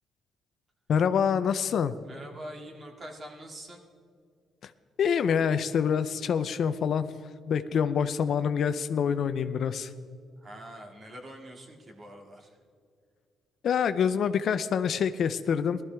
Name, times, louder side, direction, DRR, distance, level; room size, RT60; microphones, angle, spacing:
voice 1, 0.9-1.9 4.6-4.7 5.0-7.1 7.5-9.9 13.6-15.8, left 7 dB, 65° left, 12 dB, 0.4 m, -26 dB
voice 2, 2.0-3.8 7.7-7.8 10.4-12.6, right 1 dB, 40° right, 2 dB, 2.1 m, -45 dB
16.5 x 13.0 x 3.4 m, 2.3 s
cardioid pair, 90°, 0 cm